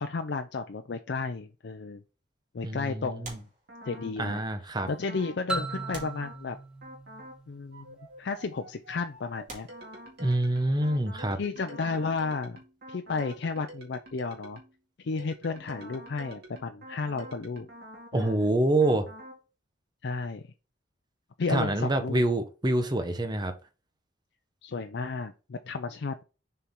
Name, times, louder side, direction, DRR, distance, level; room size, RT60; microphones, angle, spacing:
voice 1, 0.0-2.0 2.5-3.5 3.8-4.4 4.9-6.6 7.5-9.7 11.4-12.6 12.9-14.6 15.0-17.7 18.1-18.5 20.0-20.4 21.4-22.2 24.6-26.2, left 4 dB, 65° left, 0.5 m, -33 dB
voice 2, 2.6-3.4 4.2-4.9 10.2-11.4 18.1-19.1 21.5-23.5, right 1 dB, 25° right, 0.9 m, -26 dB
sound 1, 3.2-4.3 5.1-5.2 5.9-7.0 8.0-8.2 8.8-8.9 9.5-10.7 12.6-14.4 14.6-14.8, right 2 dB, 45° right, 2.3 m, -49 dB
sound 2, 3.7-4.4 4.8-5.4 5.7-6.4 6.8-7.4 7.7-14.8 15.2-18.4 18.8-19.4, right 1 dB, 60° right, 2.0 m, -47 dB
sound 3, 5.5-8.2, right 3 dB, 5° right, 1.2 m, -37 dB
7.0 x 4.5 x 3.7 m
head